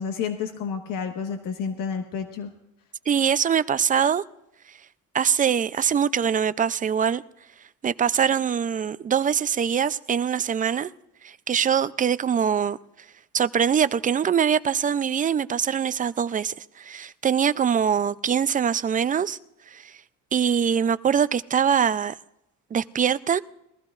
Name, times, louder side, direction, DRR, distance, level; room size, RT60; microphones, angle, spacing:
voice 1, 0.0-2.5, left 6 dB, 85° left, 1.3 m, -30 dB
voice 2, 3.1-4.2 5.1-7.2 7.8-10.9 11.2-12.8 13.3-19.4 19.7-19.9 20.3-22.2 22.7-23.4, right 7 dB, 25° right, 0.4 m, -23 dB
21.5 x 15.0 x 2.4 m
cardioid pair, 125°, 32 cm